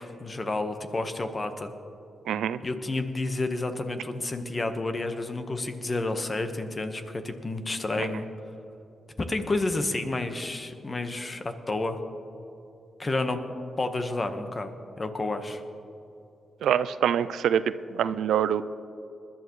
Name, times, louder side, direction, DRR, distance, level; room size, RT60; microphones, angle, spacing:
voice 1, 0.0-1.7 2.6-8.2 9.2-12.0 13.0-13.4 13.8-15.6, left 2 dB, 35° left, 7 dB, 1.3 m, -30 dB
voice 2, 2.3-2.6 8.0-8.1 16.6-18.6, right 9 dB, 85° right, 14 dB, 0.4 m, -25 dB
21.0 x 11.5 x 3.2 m, 2.8 s
cardioid pair, 60°, 0 cm